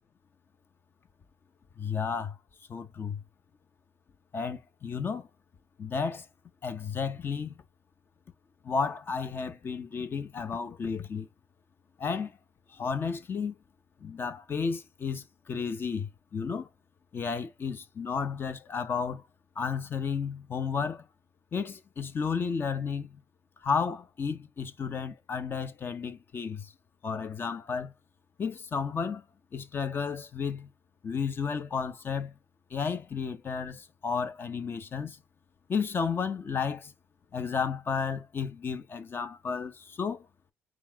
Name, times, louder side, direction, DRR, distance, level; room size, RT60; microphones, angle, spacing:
voice 1, 1.8-2.3 2.7-3.2 4.3-5.3 5.8-6.2 6.6-7.6 8.6-11.3 12.0-12.3 12.7-13.5 14.0-16.7 17.1-19.2 19.6-21.0 21.5-23.2 23.6-26.7 27.0-27.9 28.4-29.2 29.5-30.7 31.0-32.3 32.7-35.2 35.7-36.9 37.3-40.2, left 5 dB, 45° left, 0.9 m, -32 dB
4.6 x 3.1 x 3.6 m
supercardioid pair, 70°, 5 cm